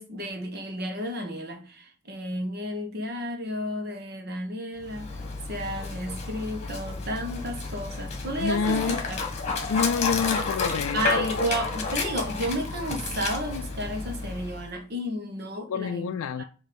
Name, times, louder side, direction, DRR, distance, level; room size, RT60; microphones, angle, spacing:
voice 1, 0.0-5.2 5.5-9.2 10.9-16.4, equal, 50° right, 1.4 m, -32 dB
Dog, 4.8-14.7, left 4 dB, 35° left, 1.5 m, -31 dB
voice 2, 8.4-9.0 9.7-11.0 15.7-16.4, left 6 dB, 85° left, 0.4 m, -27 dB
7.3 x 3.0 x 5.3 m
head